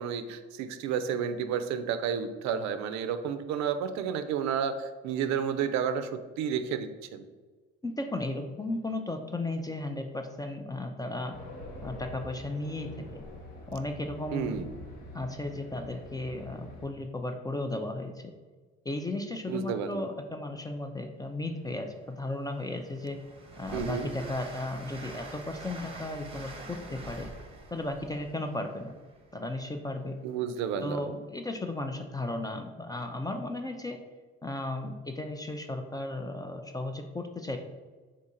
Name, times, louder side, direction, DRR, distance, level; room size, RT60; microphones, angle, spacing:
voice 1, 0.0-7.2 14.3-14.7 19.5-20.1 23.7-24.1 30.2-31.0, right 7 dB, 65° right, 10 dB, 0.4 m, -31 dB
voice 2, 7.8-11.4 11.8-13.2 13.7-14.8 15.1-18.3 18.9-23.2 23.6-27.3 27.7-28.9 29.3-30.2 30.8-34.0 34.4-37.6, left 2 dB, 15° left, 5 dB, 0.3 m, -35 dB
Race car auto racing, 11.3-16.9, left 2 dB, 75° left, 0.9 m, -45 dB
Train, 21.5-21.6 22.0-29.8, right 2 dB, 20° right, 0.8 m, -46 dB
3.7 x 2.5 x 4.1 m, 1.4 s
supercardioid pair, 70°, 30 cm